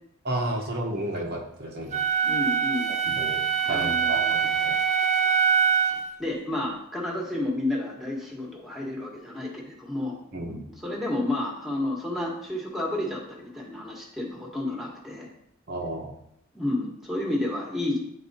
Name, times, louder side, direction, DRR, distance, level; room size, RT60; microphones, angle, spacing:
voice 1, 0.2-2.0 3.1-4.8 10.3-10.6 15.7-16.2, right 1 dB, 50° right, 0 dB, 1.0 m, -32 dB
Wind instrument woodwind instrument, 1.9-6.1, right 7 dB, 35° right, 0.5 m, -24 dB
voice 2, 2.2-2.9 3.6-4.4 5.9-10.2 10.4-15.3 16.5-18.0, left 1 dB, ahead, -2 dB, 1.4 m, -31 dB
10.0 x 4.2 x 2.8 m, 0.72 s
head